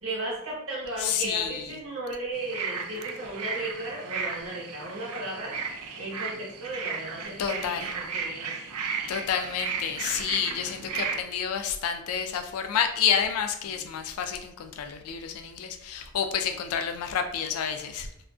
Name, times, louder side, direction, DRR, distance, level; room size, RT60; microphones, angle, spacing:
voice 1, 0.0-5.6 6.0-8.5 13.6-13.8, right 2 dB, 65° right, -5 dB, 1.1 m, -35 dB
voice 2, 1.0-1.8 7.4-7.9 9.1-18.1, left 7 dB, 80° left, 6 dB, 0.3 m, -29 dB
sound 1, 2.3-11.2, right 5 dB, 90° right, 0.4 m, -35 dB
2.5 x 2.2 x 2.3 m, 0.79 s
head